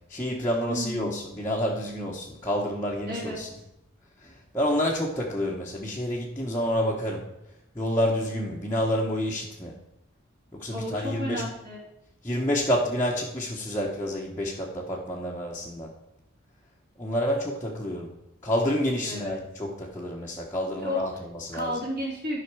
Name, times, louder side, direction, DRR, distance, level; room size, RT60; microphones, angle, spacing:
voice 1, 0.1-3.5 4.2-7.2 7.7-9.7 10.5-11.4 12.2-15.9 17.0-18.1 18.4-21.7, equal, 10° left, -5 dB, 1.1 m, -28 dB
voice 2, 0.7-1.2 3.1-3.4 10.7-11.8 19.0-19.4 20.8-21.1 21.5-22.4, left 1 dB, 45° right, -7 dB, 2.9 m, -32 dB
12.0 x 5.7 x 4.7 m, 0.88 s
head